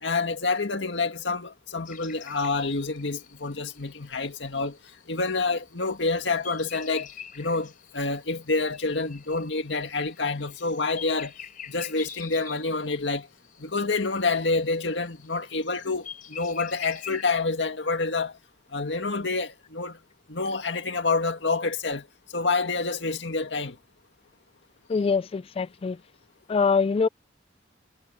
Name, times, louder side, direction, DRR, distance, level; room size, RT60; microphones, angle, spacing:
voice 1, 0.0-4.8 5.1-7.1 7.4-11.3 11.7-13.3 13.6-18.3 18.7-20.0 20.3-22.1 22.3-23.8, left 3 dB, 70° left, 2.1 m, -28 dB
sound 1, 1.9-17.4, left 8 dB, 50° left, 4.3 m, -46 dB
voice 2, 24.9-25.9 26.5-27.1, left 5 dB, 30° left, 0.3 m, -24 dB
head